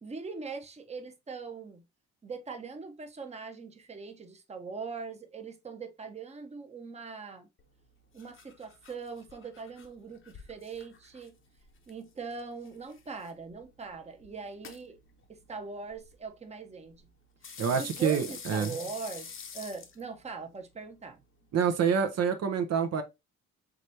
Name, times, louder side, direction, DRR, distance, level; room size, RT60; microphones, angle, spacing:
voice 1, 0.0-1.8 2.2-7.5 8.1-11.3 11.9-15.0 15.3-17.1 17.7-19.3 19.5-21.2, right 4 dB, 20° right, 0.8 m, -41 dB
sound 1, 7.6-21.8, left 6 dB, 45° left, 0.9 m, -50 dB
voice 2, 17.6-18.7 21.5-23.0, right 7 dB, 60° right, 0.7 m, -27 dB
4.9 x 3.3 x 2.6 m
cardioid pair, 90°, 30 cm